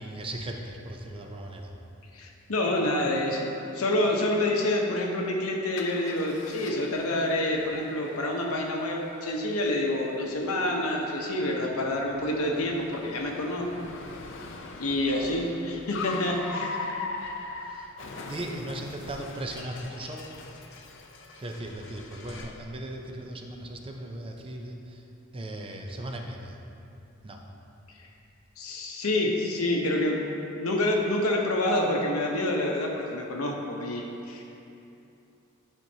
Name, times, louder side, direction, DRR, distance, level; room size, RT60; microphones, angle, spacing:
voice 1, 0.0-1.7 15.1-15.4 17.7-17.9 18.3-20.3 21.4-25.0 25.3-26.6 27.2-27.4, right 1 dB, 25° right, 2 dB, 0.5 m, -37 dB
voice 2, 2.1-13.7 14.8-16.7 28.6-30.2 30.6-34.4, left 1 dB, 80° left, 0 dB, 0.9 m, -27 dB
Car, 5.8-22.6, left 3 dB, 60° left, 0.5 m, -42 dB
10.5 x 4.4 x 2.8 m, 2.8 s
head